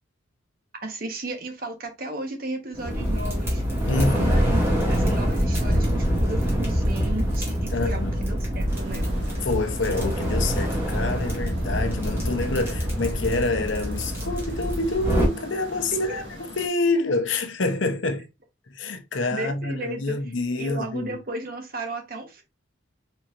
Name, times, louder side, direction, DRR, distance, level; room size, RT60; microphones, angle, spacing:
voice 1, 0.8-3.6 4.0-9.0 15.9-16.2 19.3-20.1 20.6-22.4, right 2 dB, 45° right, 1.2 m, -34 dB
sound 1, 2.7-15.3, equal, 10° right, 1.9 m, -25 dB
voice 2, 3.9-4.5 7.7-8.1 9.4-16.2 16.6-18.2 18.7-21.2, left 3 dB, 70° left, 0.8 m, -27 dB
sound 2, 8.7-16.7, equal, 65° right, 2.0 m, -40 dB
4.4 x 4.4 x 2.6 m
head